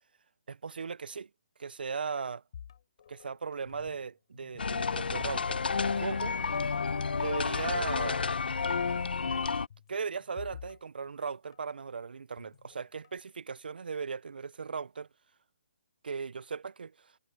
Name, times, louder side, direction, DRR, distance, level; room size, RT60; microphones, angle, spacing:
voice 1, 0.5-1.3 1.6-2.4 3.1-5.6 6.0-6.3 7.1-8.2 9.9-15.1 16.0-16.9, right 5 dB, 85° right, 0.5 m, -37 dB
sound 1, 2.5-4.1 4.3-5.9 6.2-6.4 7.0-8.2 8.4-8.5 9.7-11.8 12.4-13.2, left 8 dB, 40° left, 3.8 m, -50 dB
sound 2, 4.6-9.7, left 5 dB, 90° left, 0.6 m, -31 dB
hypercardioid pair, 175°, 5 cm